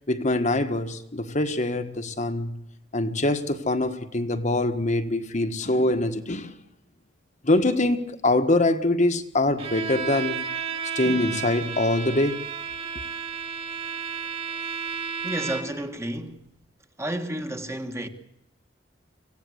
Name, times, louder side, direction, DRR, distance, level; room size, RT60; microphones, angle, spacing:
voice 1, 0.1-2.6 2.9-6.5 7.4-10.4 10.9-12.4, left 2 dB, 40° left, 1.5 m, -24 dB
Bowed string instrument, 9.6-15.9, right 6 dB, 30° right, 2.8 m, -32 dB
voice 2, 15.2-16.4 17.0-18.1, right 1 dB, 15° right, 1.7 m, -31 dB
25.5 x 17.0 x 8.1 m
head